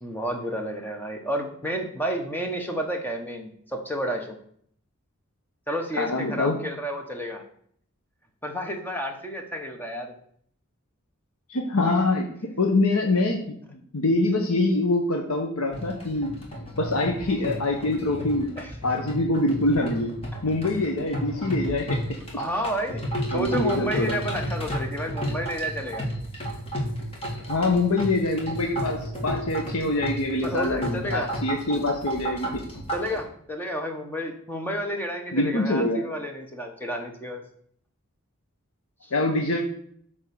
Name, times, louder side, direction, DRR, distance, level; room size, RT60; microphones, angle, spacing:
voice 1, 0.0-4.4 5.7-7.4 8.4-10.1 18.6-18.7 22.3-23.0 23.3-26.1 30.4-31.3 32.9-37.4 39.0-39.1, equal, 10° left, 3 dB, 0.9 m, -31 dB
voice 2, 6.0-6.6 11.5-12.3 12.6-13.4 13.7-16.3 16.8-18.5 18.8-20.1 20.4-22.0 22.3-22.4 23.3-24.1 27.4-32.6 35.3-36.0 39.1-39.6, left 2 dB, 75° left, 2 dB, 1.0 m, -24 dB
sound 1, 15.7-33.2, equal, 25° left, 1.8 m, -33 dB
8.6 x 3.7 x 6.8 m, 0.64 s
head